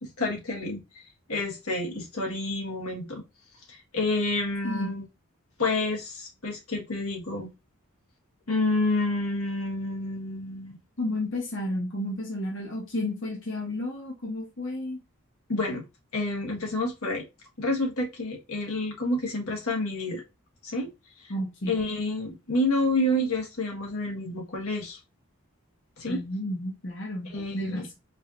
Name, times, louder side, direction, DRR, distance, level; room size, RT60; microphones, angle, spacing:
voice 1, 0.0-0.8 1.3-3.2 3.7-5.0 5.6-7.5 8.5-10.8 15.5-15.8 16.1-17.2 17.6-20.2 20.6-20.9 21.2-21.3 21.7-25.0 26.0-26.2 27.3-27.9, left 2 dB, 90° left, 1.5 m, -29 dB
voice 2, 11.0-15.0 21.3-21.8 26.1-27.3 27.5-27.9, left 1 dB, 60° left, 1.2 m, -32 dB
4.8 x 2.9 x 2.5 m
head